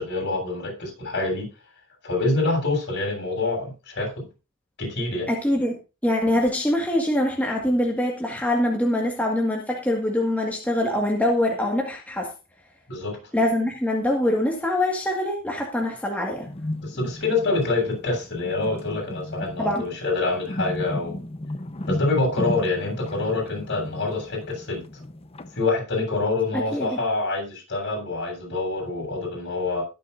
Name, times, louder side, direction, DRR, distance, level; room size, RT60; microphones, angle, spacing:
voice 1, 0.0-1.5 2.0-4.3 4.8-5.3 12.9-13.2 16.8-21.2 21.9-24.8 25.6-29.8, left 3 dB, 50° left, 1 dB, 7.8 m, -26 dB
voice 2, 5.3-12.3 13.3-16.5 19.6-19.8 26.5-27.0, left 1 dB, 5° left, 0 dB, 1.9 m, -24 dB
sound 1, 16.4-25.6, left 1 dB, 25° left, 0.9 m, -34 dB
21.0 x 7.7 x 2.7 m, 0.30 s
head